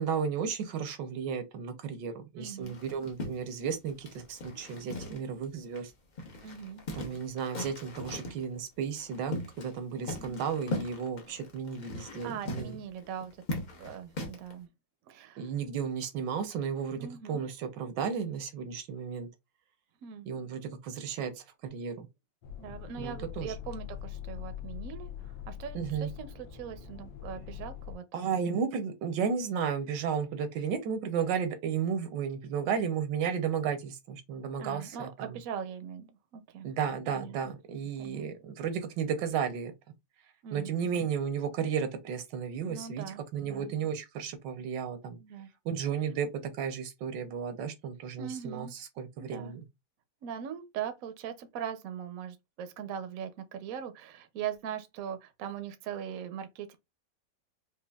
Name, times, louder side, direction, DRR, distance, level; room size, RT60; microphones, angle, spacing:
voice 1, 0.0-5.9 6.9-12.7 15.4-17.0 17.3-19.3 20.3-21.3 21.6-22.1 23.0-23.5 25.7-26.1 28.1-35.4 36.6-39.7 40.5-45.2 45.6-46.3 46.6-48.7 49.0-49.6, right 7 dB, 80° right, 1.3 m, -33 dB
voice 2, 2.4-2.8 6.4-6.8 10.2-10.4 12.2-13.3 13.8-14.7 15.1-15.5 17.0-17.4 20.0-20.3 22.6-28.3 34.6-36.7 37.1-37.4 38.0-38.3 40.4-40.8 42.7-43.7 45.2-45.5 48.2-48.7 49.2-49.6 50.2-56.8, right 8 dB, 65° right, 0.9 m, -41 dB
sound 1, 2.6-5.5 5.7-5.8 6.2-8.4 9.0-9.8 10.0-14.5, left 1 dB, 45° left, 0.6 m, -39 dB
sound 2, 22.4-27.9, left 10 dB, 75° left, 1.4 m, -43 dB
5.0 x 2.5 x 2.2 m
omnidirectional pair, 1.9 m